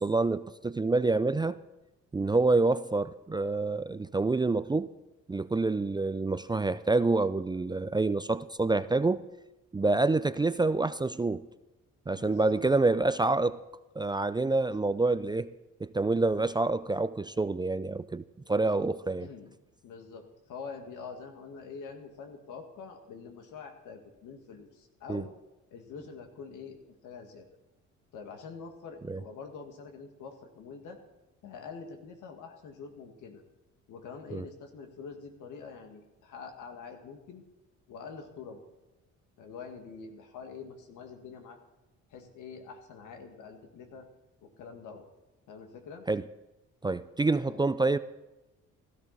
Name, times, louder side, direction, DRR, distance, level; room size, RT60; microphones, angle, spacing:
voice 1, 0.0-1.6 2.1-4.9 5.3-9.3 9.7-11.4 12.1-13.6 14.0-15.5 15.8-18.2 18.5-19.3 25.1-25.2 29.1-29.2 34.3-34.4 46.1-46.2 46.8-48.0, right 3 dB, 15° right, 0.4 m, -27 dB
voice 2, 12.1-12.9 13.4-13.5 16.4-16.7 19.2-19.5 19.8-25.3 25.7-27.5 28.1-31.0 31.4-33.4 33.9-37.4 37.9-38.7 39.4-41.6 42.1-44.1 44.4-45.1 45.5-46.1 47.3-47.7, left 5 dB, 85° left, 2.0 m, -45 dB
16.0 x 13.0 x 4.1 m
cardioid pair, 90°, 30 cm